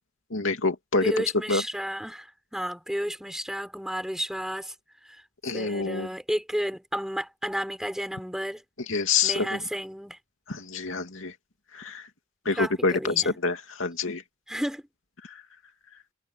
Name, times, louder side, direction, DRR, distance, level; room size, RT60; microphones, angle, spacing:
voice 1, 0.3-1.1 1.5-1.6 5.4-6.1 8.9-9.5 10.5-11.3 11.7-12.1 12.4-14.2 15.2-15.4, left 4 dB, 80° left, 2.6 m, -27 dB
voice 2, 1.0-4.7 5.0-5.2 5.5-8.6 9.2-10.2 12.5-13.4 14.5-14.8, equal, ahead, 5.9 m, -32 dB
head